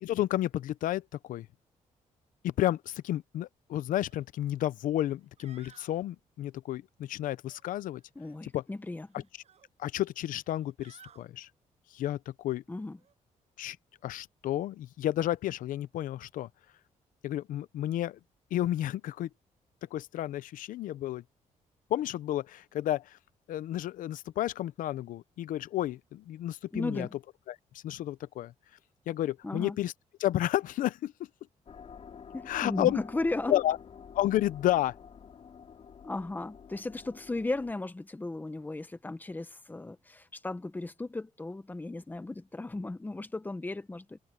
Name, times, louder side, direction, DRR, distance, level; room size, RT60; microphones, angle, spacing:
voice 1, 0.0-1.5 2.4-8.0 8.5-8.6 9.1-9.2 9.8-11.5 11.9-12.6 13.6-13.8 14.0-16.5 17.2-18.2 18.5-19.3 19.9-21.2 21.9-23.2 23.5-27.1 27.5-27.6 27.8-28.5 29.1-29.9 30.2-31.1 32.5-33.0 33.5-33.8 34.1-35.0, left 13 dB, 85° left, 0.6 m, -31 dB
sound 1, 4.0-4.2 4.6-4.7 5.2-6.0 7.4-8.4 8.8-9.7 10.4-11.3 13.0-13.1, right 8 dB, 55° right, 6.8 m, -59 dB
voice 2, 8.2-9.1 12.7-13.0 26.7-27.1 29.4-29.8 32.3-33.6 36.0-44.2, left 2 dB, 15° left, 1.1 m, -35 dB
sound 2, 31.7-37.7, left 7 dB, 50° left, 3.9 m, -49 dB
cardioid pair, 130°, 13 cm